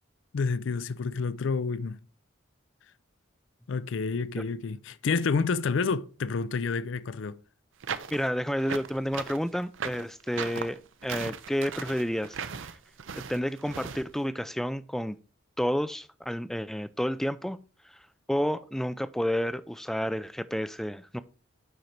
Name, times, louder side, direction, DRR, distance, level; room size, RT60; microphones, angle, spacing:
voice 1, 0.3-2.0 3.7-7.4, left 4 dB, 70° left, 0.4 m, -29 dB
sound 1, 7.8-14.0, right 6 dB, 75° right, 0.6 m, -37 dB
voice 2, 8.1-12.7 13.3-15.2 15.6-17.6 17.8-18.0 18.3-21.2, equal, ahead, 0.3 m, -30 dB
7.9 x 5.2 x 4.4 m
head